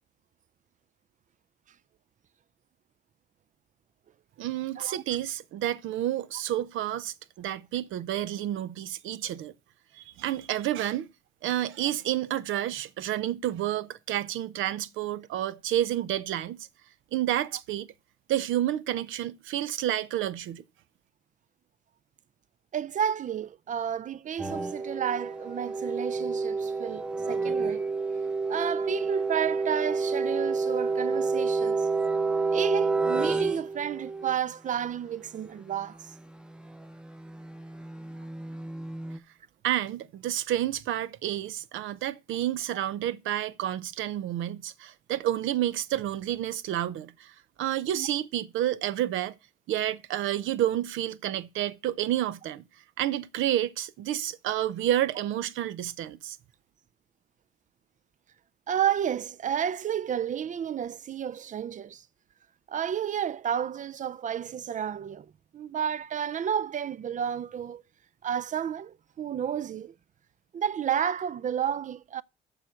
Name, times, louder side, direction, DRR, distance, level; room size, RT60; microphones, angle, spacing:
voice 1, 4.4-9.5 10.2-11.1 11.4-16.6 17.1-17.9 18.3-20.6 39.6-47.3 47.6-49.3 49.7-52.6 53.0-56.4, right 12 dB, 85° right, 0.6 m, -30 dB
voice 2, 22.7-27.9 28.5-31.8 32.5-36.1 48.0-48.1 58.7-62.0 62.7-67.8 68.2-69.9 70.5-72.2, right 9 dB, 40° right, 0.4 m, -31 dB
sound 1, 24.4-34.3 36.5-39.2, right 4 dB, 5° right, 0.7 m, -29 dB
7.0 x 5.9 x 6.2 m
cardioid pair, 90°, 20 cm